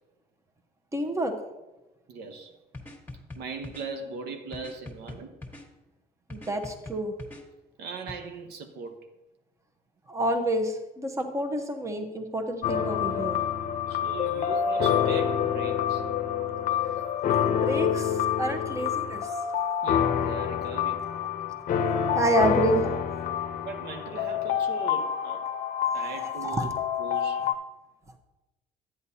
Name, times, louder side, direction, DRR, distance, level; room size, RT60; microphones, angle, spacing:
voice 1, 0.9-1.3 6.3-7.1 10.1-13.4 17.5-19.3 22.1-23.0 26.4-26.7 27.4-27.5, right 1 dB, 15° right, 1.0 m, -28 dB
voice 2, 2.1-2.5 3.4-5.4 7.8-9.0 13.9-16.1 16.3-16.8 19.8-21.1 23.6-25.5 25.9-27.5, right 4 dB, 75° right, 0.9 m, -40 dB
sound 1, 2.7-3.9 4.5-5.7 6.3-7.4 8.1-8.2, left 2 dB, 10° left, 1.4 m, -42 dB
sound 2, 12.6-27.5, left 8 dB, 50° left, 0.6 m, -27 dB
11.0 x 9.4 x 2.8 m
cardioid pair, 110°, 17 cm